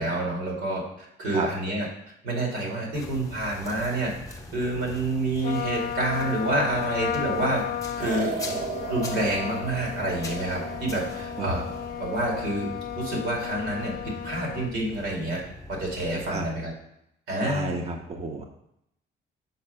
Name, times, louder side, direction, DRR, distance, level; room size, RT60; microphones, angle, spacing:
voice 1, 0.0-1.9 2.2-4.1 4.5-7.6 8.0-8.6 8.9-11.6 12.0-12.7 13.0-15.4 15.7-16.7 17.3-17.8, right 2 dB, 85° right, -1 dB, 2.4 m, -28 dB
sound 1, 2.9-16.5, left 2 dB, 15° left, 0.9 m, -43 dB
Trumpet, 5.4-14.8, left 10 dB, 45° left, 0.5 m, -34 dB
sound 2, 8.0-12.5, right 4 dB, 60° right, 1.4 m, -36 dB
voice 2, 17.4-18.4, right 2 dB, 30° right, 2 dB, 0.8 m, -31 dB
5.8 x 4.3 x 5.3 m, 0.79 s
cardioid pair, 90°, 20 cm